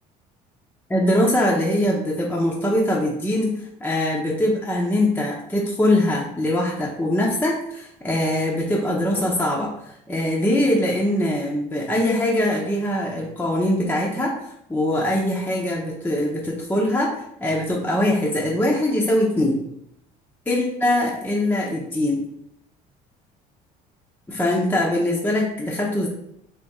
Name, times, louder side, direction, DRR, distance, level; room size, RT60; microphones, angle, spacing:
voice 1, 0.9-3.5 3.8-19.6 20.5-22.2 24.3-26.1, left 1 dB, 10° left, -4 dB, 0.8 m, -22 dB
3.6 x 2.5 x 4.0 m, 0.76 s
supercardioid pair, 100°, 17 cm